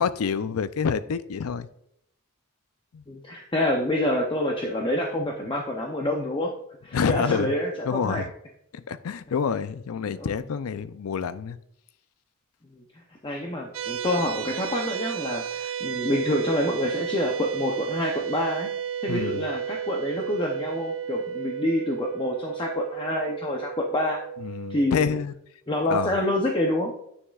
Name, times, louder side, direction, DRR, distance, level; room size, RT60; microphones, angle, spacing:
voice 1, 0.0-1.7 2.9-3.0 6.9-7.5 7.8-8.3 8.7-11.6 19.1-19.4 24.4-25.3 25.9-26.1, left 6 dB, 90° left, 0.5 m, -27 dB
voice 2, 3.1-6.5 6.8-8.2 10.1-10.3 12.7-12.8 13.2-18.7 19.0-24.2 24.7-25.2 25.7-26.9, left 1 dB, 25° left, 0.6 m, -27 dB
sound 1, 13.7-24.9, right 8 dB, 65° right, 0.4 m, -32 dB
9.5 x 6.2 x 2.3 m
head